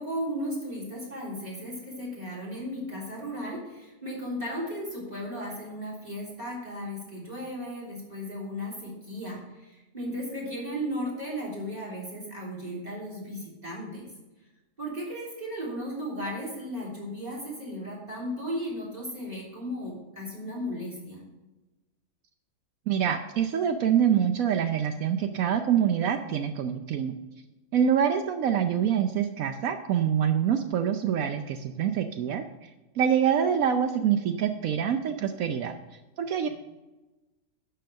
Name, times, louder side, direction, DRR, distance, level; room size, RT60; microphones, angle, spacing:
voice 1, 0.0-14.1 14.8-21.2 36.5-36.6, equal, 25° right, -4 dB, 3.6 m, -35 dB
voice 2, 22.9-27.1 27.7-32.7 33.0-35.7 36.2-36.5, right 8 dB, 75° right, 7 dB, 1.0 m, -25 dB
11.5 x 4.5 x 6.4 m, 1.1 s
omnidirectional pair, 1.5 m